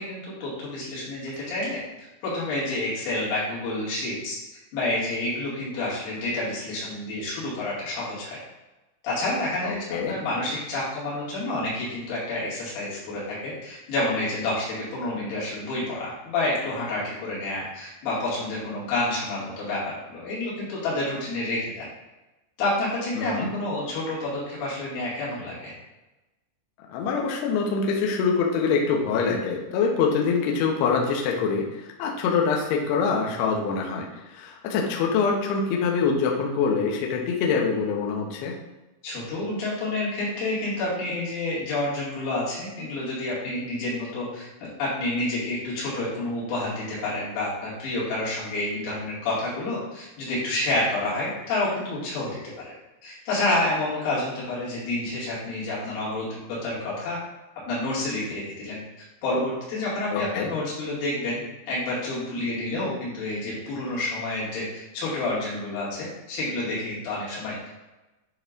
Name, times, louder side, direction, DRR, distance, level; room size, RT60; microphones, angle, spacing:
voice 1, 0.0-4.4 4.7-8.4 9.0-19.8 20.1-21.8 22.6-25.7 39.0-52.7 53.0-57.2 57.7-58.8 59.2-67.7, left 2 dB, 70° left, -9 dB, 4.6 m, -29 dB
voice 2, 9.6-10.2 23.2-23.5 26.9-38.6 60.1-60.5, left 5 dB, 85° left, 0 dB, 2.3 m, -25 dB
9.6 x 4.4 x 2.5 m, 1.1 s
omnidirectional pair, 5.9 m